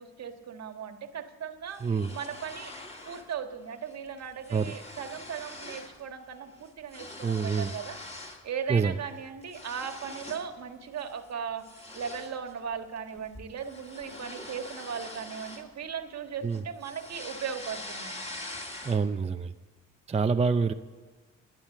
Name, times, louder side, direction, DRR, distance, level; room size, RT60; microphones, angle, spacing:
voice 1, 0.0-1.8 2.1-2.7 3.0-8.0 8.4-18.3, right 7 dB, 60° right, 7 dB, 1.6 m, -38 dB
sound 1, 1.7-3.3 3.7-6.0 6.3-8.5 8.9-10.5 11.0-11.2 11.6-16.2 16.5-19.2, left 2 dB, 20° left, 2.3 m, -44 dB
voice 2, 1.8-2.1 4.5-4.7 7.2-7.7 8.7-9.0 16.4-16.6 18.8-19.5 20.1-20.7, right 5 dB, 20° right, 7 dB, 0.5 m, -26 dB
18.5 x 10.0 x 7.3 m, 1.4 s
cardioid pair, 90°, 30 cm